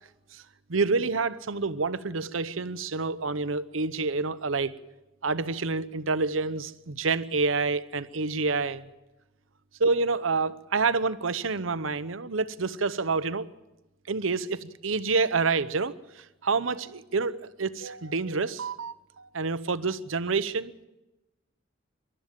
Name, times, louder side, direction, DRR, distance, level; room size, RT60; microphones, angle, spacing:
voice 1, 0.7-4.7 5.2-8.9 9.8-13.5 14.1-15.9 16.4-20.7, right 4 dB, 80° right, 0.9 m, -28 dB
27.5 x 12.5 x 7.6 m
head